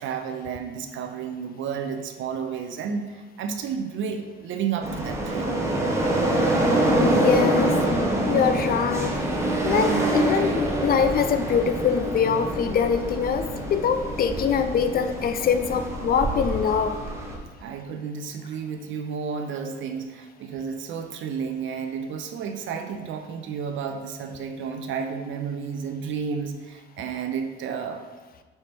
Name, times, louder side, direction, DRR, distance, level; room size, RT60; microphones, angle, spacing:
voice 1, 0.0-5.6 17.6-28.0, right 6 dB, 75° right, 6 dB, 0.5 m, -32 dB
sound 1, 4.8-17.4, right 1 dB, 15° right, 0.8 m, -25 dB
voice 2, 7.0-7.8 8.3-9.2 9.6-17.0, left 7 dB, 50° left, 9 dB, 0.4 m, -23 dB
5.4 x 2.8 x 3.3 m, 1.2 s
cardioid pair, 90°, 20 cm